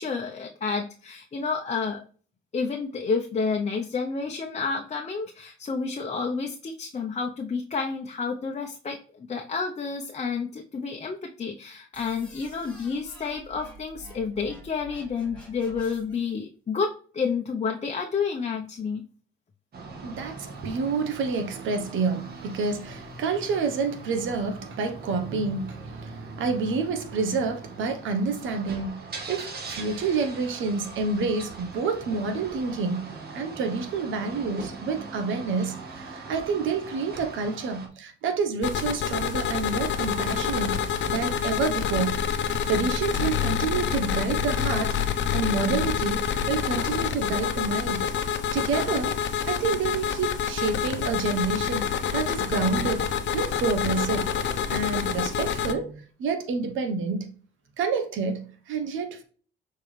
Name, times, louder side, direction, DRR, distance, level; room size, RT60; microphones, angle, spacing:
voice 1, 0.0-2.0 2.5-19.0, left 5 dB, 35° left, 0.9 m, -30 dB
sound 1, 11.9-16.3, right 1 dB, 5° left, 3.4 m, -48 dB
sound 2, 19.7-37.9, right 3 dB, 50° right, 2.0 m, -41 dB
voice 2, 20.0-45.0 45.3-48.1 48.5-49.2 49.5-54.3 54.7-57.3 57.8-59.2, right 4 dB, 80° right, 1.2 m, -28 dB
sound 3, 38.6-55.7, left 8 dB, 70° left, 0.9 m, -27 dB
6.9 x 4.5 x 3.4 m
cardioid pair, 90°, 20 cm